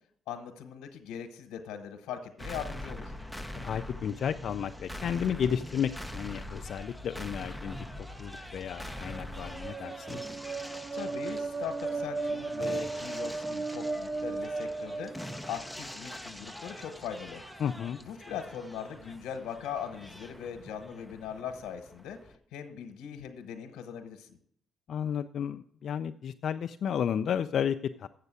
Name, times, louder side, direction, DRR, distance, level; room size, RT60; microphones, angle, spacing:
voice 1, 0.3-3.1 10.9-17.4 18.0-22.2 22.5-24.4, left 8 dB, 90° left, 5 dB, 1.1 m, -40 dB
sound 1, 2.4-22.4, left 1 dB, ahead, 0.7 m, -43 dB
voice 2, 3.5-10.2 17.6-18.0 24.9-28.1, left 8 dB, 65° left, 8 dB, 0.4 m, -33 dB
sound 2, 9.0-15.8, right 3 dB, 25° right, 0.4 m, -36 dB
8.1 x 6.6 x 8.2 m, 0.63 s
cardioid pair, 90°, 0 cm